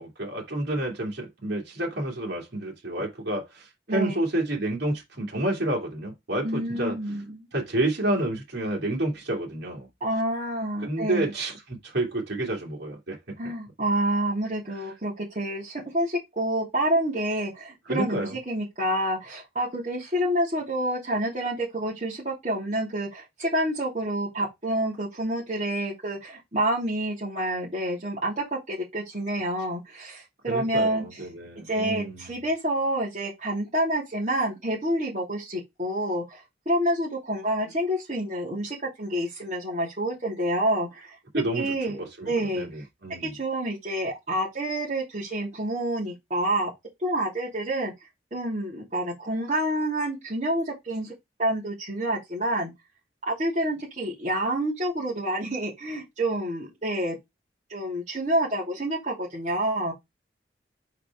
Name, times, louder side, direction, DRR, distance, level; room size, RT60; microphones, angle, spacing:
voice 1, 0.0-6.9 7.5-9.9 10.8-13.2 17.9-18.4 30.5-32.4 41.3-41.7 42.0-43.3, right 1 dB, 75° right, 2.3 m, -29 dB
voice 2, 6.4-7.5 10.0-11.3 13.4-31.0 31.7-41.1 41.5-42.0 42.3-42.7 43.2-46.7 47.0-47.9 48.3-51.1 51.4-52.7 53.3-57.2 57.7-59.9, right 1 dB, 40° right, 3.0 m, -28 dB
4.9 x 4.6 x 4.5 m
head